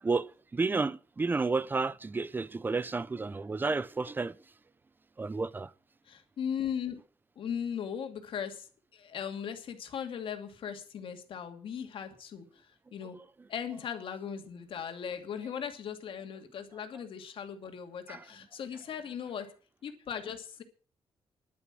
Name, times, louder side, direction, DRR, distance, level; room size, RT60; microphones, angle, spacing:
voice 1, 0.0-4.4 5.2-5.7 18.1-18.2, right 3 dB, 20° right, 0.6 m, -31 dB
voice 2, 6.1-7.0 7.4-8.7 8.9-13.2 13.5-19.5 19.8-20.6, left 8 dB, 65° left, 2.6 m, -38 dB
11.5 x 10.0 x 7.6 m
cardioid pair, 125°, 10 cm